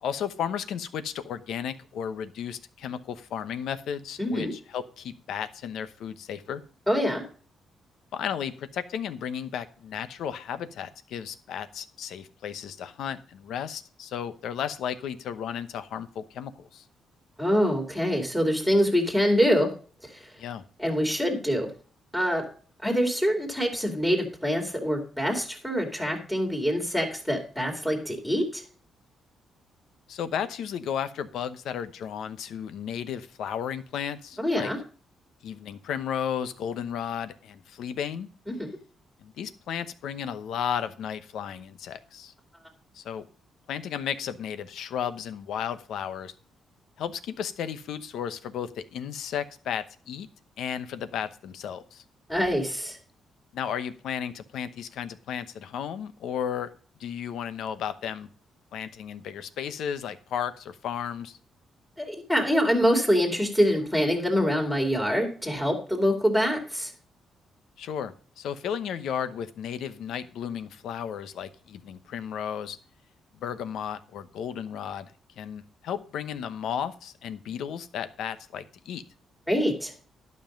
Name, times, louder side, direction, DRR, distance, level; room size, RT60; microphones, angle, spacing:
voice 1, 0.0-6.6 8.1-16.8 20.4-20.6 30.1-34.7 35.4-38.3 39.2-42.3 42.9-43.3 43.7-46.3 47.0-50.3 50.6-52.0 53.5-56.7 57.0-58.3 58.7-61.4 67.8-72.8 73.4-75.1 75.4-79.0, left 8 dB, 80° left, 12 dB, 0.9 m, -34 dB
voice 2, 4.2-4.5 6.9-7.2 17.4-19.7 20.0-20.3 20.8-21.7 22.1-22.4 22.8-28.6 34.4-34.8 38.6-38.7 52.3-53.0 62.0-66.9 79.5-79.9, equal, 5° left, 3 dB, 2.5 m, -25 dB
11.5 x 5.5 x 5.2 m, 0.42 s
cardioid pair, 140°, 0 cm